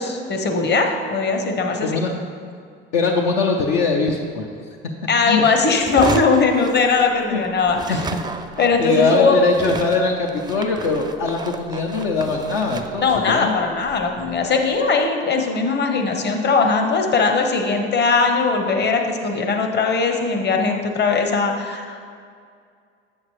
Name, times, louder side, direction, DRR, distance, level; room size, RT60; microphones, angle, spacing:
voice 1, 0.0-2.0 5.1-8.0 8.6-9.4 13.0-22.1, left 4 dB, 35° left, 3 dB, 1.0 m, -20 dB
voice 2, 2.9-4.5 5.3-5.4 7.3-7.4 7.9-8.0 8.8-13.5, left 4 dB, 70° left, 1 dB, 0.7 m, -21 dB
sound 1, 5.8-7.4 7.7-14.9, right 4 dB, 15° right, 0.4 m, -33 dB
7.7 x 7.2 x 3.2 m, 2.2 s
hypercardioid pair, 65°, 29 cm